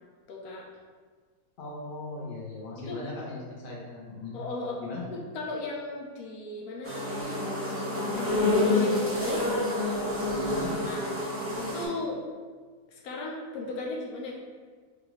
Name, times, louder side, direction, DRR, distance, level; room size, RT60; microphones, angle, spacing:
voice 1, 0.3-0.7 2.9-3.0 4.3-4.8 5.1-7.4 8.1-9.4 10.8-11.1 11.6-12.2 12.9-14.4, left 2 dB, 80° left, -1 dB, 1.1 m, -36 dB
voice 2, 1.6-4.4 4.7-5.0 10.3-10.7, left 3 dB, 40° left, -5 dB, 1.0 m, -38 dB
sound 1, 6.8-11.8, left 2 dB, 15° right, 0.6 m, -28 dB
4.9 x 2.5 x 3.0 m, 1.5 s
omnidirectional pair, 1.6 m